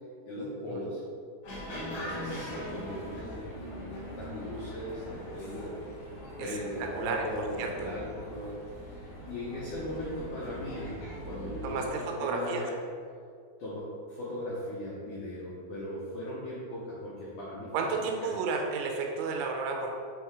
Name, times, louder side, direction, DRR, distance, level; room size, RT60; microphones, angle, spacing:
voice 1, 0.3-1.0 1.8-5.7 6.3-12.8 13.6-17.7 18.0-18.3, left 1 dB, 85° left, -7 dB, 1.7 m, -38 dB
sound 1, 1.4-11.9, equal, 55° left, 2.2 m, -42 dB
voice 2, 6.8-7.3 7.6-7.7 11.6-12.6 17.7-19.9, right 4 dB, 85° right, 2 dB, 2.8 m, -32 dB
7.7 x 3.3 x 4.8 m, 2.2 s
omnidirectional pair, 5.2 m